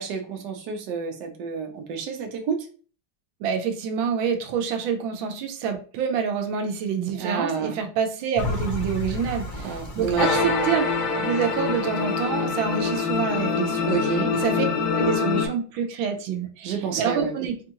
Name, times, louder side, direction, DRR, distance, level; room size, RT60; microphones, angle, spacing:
voice 1, 0.0-2.7 7.1-7.8 9.6-10.4 13.9-14.3 16.6-17.3, right 6 dB, 70° right, 4 dB, 1.2 m, -29 dB
voice 2, 3.4-10.9 11.2-13.9 14.3-17.6, right 7 dB, 90° right, 5 dB, 1.4 m, -27 dB
sound 1, 8.3-13.4 13.9-14.0, left 2 dB, 70° left, 0.4 m, -34 dB
sound 2, 10.2-15.5, left 5 dB, 85° left, 1.6 m, -25 dB
4.3 x 2.4 x 2.8 m, 0.40 s
omnidirectional pair, 2.1 m